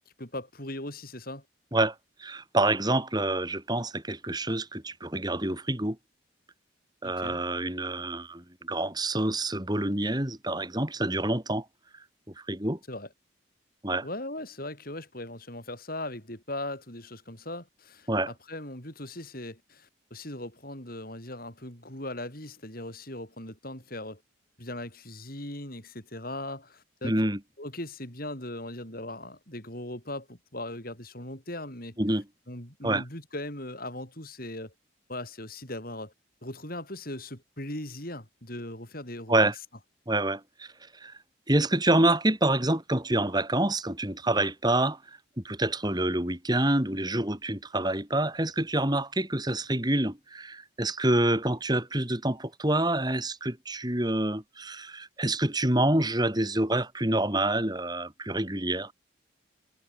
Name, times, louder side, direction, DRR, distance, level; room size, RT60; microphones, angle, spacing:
voice 1, 0.2-1.4 7.0-7.4 12.9-13.1 14.0-24.2 24.6-27.3 27.6-32.0 32.5-34.7 35.1-36.1 36.4-39.5, left 1 dB, 45° left, 7.6 m, -39 dB
voice 2, 1.7-6.0 7.0-11.6 12.4-12.8 13.8-14.1 18.1-18.3 27.0-27.4 32.0-32.2 32.8-33.0 39.3-39.5 40.1-41.1 41.5-45.0 45.4-58.9, right 1 dB, 20° right, 3.3 m, -27 dB
head